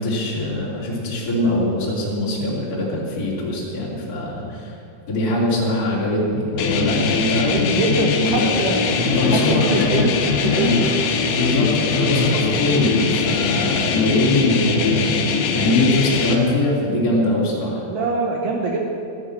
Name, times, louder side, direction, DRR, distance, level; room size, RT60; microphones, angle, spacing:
voice 1, 0.0-4.7 5.1-7.8 8.2-8.5 9.0-10.1 10.5-10.9 11.3-15.1 15.5-17.8, left 1 dB, 25° left, -5 dB, 2.6 m, -22 dB
sound 1, 6.6-16.4, left 5 dB, 75° left, 3.1 m, -21 dB
voice 2, 7.4-10.9 17.9-18.8, right 3 dB, 75° right, 0 dB, 2.0 m, -24 dB
sound 2, 8.7-14.1, equal, 10° right, 1.2 m, -37 dB
13.5 x 9.9 x 7.4 m, 2.7 s
omnidirectional pair, 5.3 m